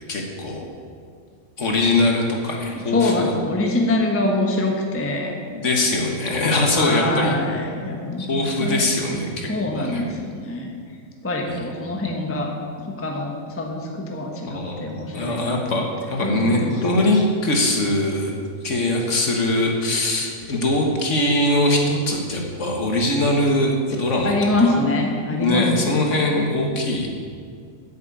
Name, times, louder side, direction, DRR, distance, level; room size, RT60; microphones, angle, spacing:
voice 1, 0.1-0.7 1.6-3.3 5.5-7.4 8.2-10.0 11.5-11.7 14.5-18.3 18.6-24.3 24.6-24.7 25.4-27.1, left 1 dB, 50° left, 1 dB, 1.4 m, -22 dB
voice 2, 2.9-5.3 6.7-8.8 9.5-10.7 11.2-12.5 12.8-15.8 16.2-17.0 24.2-26.0, left 2 dB, 10° left, 1 dB, 0.9 m, -24 dB
8.8 x 6.9 x 8.4 m, 2.2 s
omnidirectional pair, 1.8 m